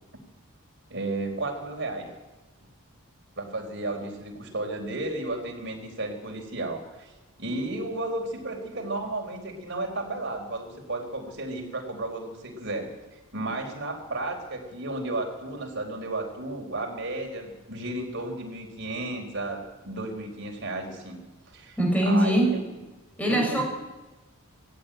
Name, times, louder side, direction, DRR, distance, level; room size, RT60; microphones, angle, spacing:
voice 1, 0.9-2.1 3.4-7.1 7.4-21.2 21.5-21.8 22.0-22.6 23.3-23.6, right 2 dB, 55° right, 2 dB, 4.3 m, -33 dB
voice 2, 21.8-22.6 23.2-23.6, right 1 dB, 5° left, 0 dB, 6.0 m, -22 dB
18.0 x 16.0 x 9.1 m, 1.1 s
head